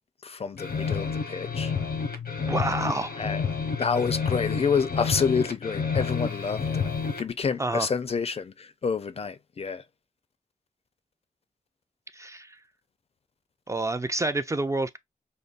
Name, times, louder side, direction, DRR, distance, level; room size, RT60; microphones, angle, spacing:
voice 1, 0.2-1.7 3.2-3.4 3.8-6.8 7.1-9.8, left 5 dB, 45° left, 0.4 m, -28 dB
sound 1, 0.6-7.3, left 5 dB, 90° left, 0.8 m, -30 dB
voice 2, 2.5-3.2 7.6-7.9 12.1-12.6 13.7-15.0, right 2 dB, 20° right, 0.4 m, -28 dB
5.2 x 2.1 x 2.4 m
wide cardioid pair, 100°, 15 cm